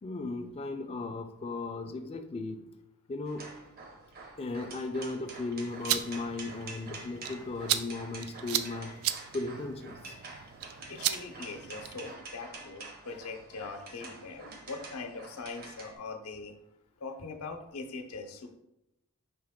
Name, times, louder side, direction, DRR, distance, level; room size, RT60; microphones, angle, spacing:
voice 1, 0.0-2.6 3.1-3.5 4.4-9.0 9.3-10.2, left 3 dB, 25° left, 7 dB, 0.3 m, -36 dB
sound 1, 3.3-16.0, right 3 dB, 45° right, 0.7 m, -47 dB
sound 2, 5.6-12.1, right 11 dB, 70° right, 0.3 m, -36 dB
voice 2, 10.9-16.5 17.0-18.5, left 4 dB, 80° left, 6 dB, 0.6 m, -42 dB
4.7 x 2.9 x 3.5 m, 0.86 s
head